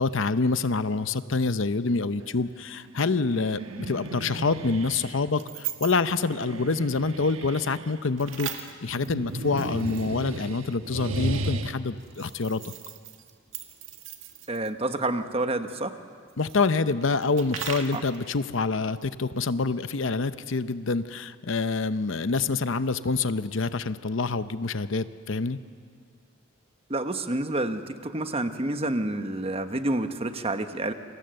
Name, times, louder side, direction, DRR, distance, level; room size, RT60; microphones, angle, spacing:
voice 1, 0.0-12.7 16.4-25.6, left 4 dB, 65° left, 12 dB, 0.8 m, -26 dB
sound 1, 2.8-2.9 5.3-6.2 8.2-10.4 12.0-14.7 16.3-18.2, right 9 dB, 70° right, 2.0 m, -39 dB
sound 2, 2.9-5.2 6.1-8.1 8.8-11.7, right 2 dB, 90° right, 1.3 m, -35 dB
voice 2, 14.5-16.0 17.9-18.0 26.9-30.9, right 2 dB, 30° right, 8 dB, 1.2 m, -28 dB
29.0 x 24.0 x 7.8 m, 2.1 s
head